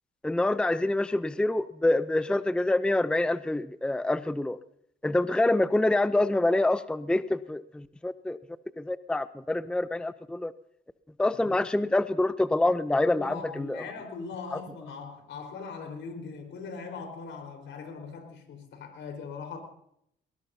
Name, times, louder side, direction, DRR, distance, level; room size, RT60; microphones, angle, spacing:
voice 1, 0.2-4.6 5.0-8.4 8.8-10.5 11.2-13.8, left 2 dB, 5° left, 14 dB, 0.5 m, -26 dB
voice 2, 13.1-19.6, left 5 dB, 70° left, 5 dB, 4.4 m, -40 dB
22.0 x 19.5 x 2.8 m, 0.73 s
cardioid pair, 90°, 20 cm